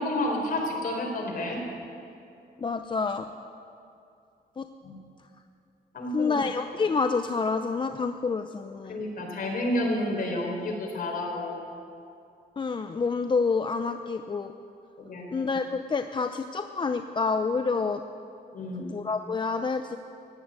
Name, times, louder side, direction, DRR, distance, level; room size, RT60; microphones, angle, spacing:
voice 1, 0.0-1.6 4.8-5.0 5.9-6.5 8.9-11.6 15.0-15.3 18.5-18.9, left 1 dB, 55° left, 0 dB, 3.9 m, -30 dB
voice 2, 2.6-3.3 4.6-4.7 6.1-9.0 12.6-14.5 15.3-18.0 18.8-20.0, left 4 dB, 30° left, 8 dB, 0.6 m, -28 dB
16.0 x 10.0 x 8.8 m, 2.6 s
cardioid pair, 100°, 17 cm